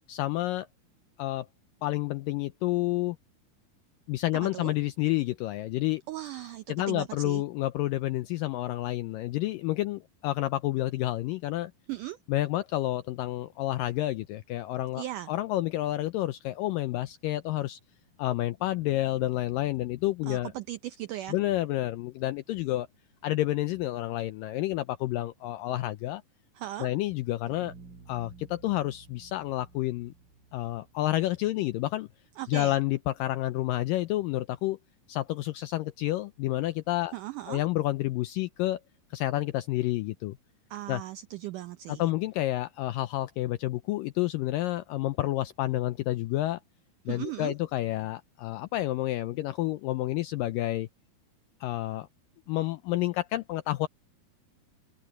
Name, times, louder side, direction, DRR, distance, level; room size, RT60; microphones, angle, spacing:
voice 1, 0.1-0.7 1.2-1.5 1.8-3.2 4.1-6.0 6.7-11.7 12.3-17.8 18.2-20.5 21.3-22.9 23.2-26.2 26.8-27.7 28.1-30.1 30.5-32.1 32.5-34.8 35.1-37.1 37.5-38.8 39.1-40.4 40.9-41.0 41.9-46.6 47.1-50.9 51.6-52.1 52.5-53.9, left 16 dB, 90° left, 2.0 m, -29 dB
voice 2, 6.1-7.4 11.9-12.2 15.0-15.3 20.3-21.4 26.6-26.9 32.4-32.8 37.1-37.6 40.7-42.1 47.1-47.6, right 14 dB, 90° right, 1.8 m, -37 dB
sound 1, 27.5-32.1, right 4 dB, 60° right, 7.9 m, -53 dB
open air
omnidirectional pair, 4.6 m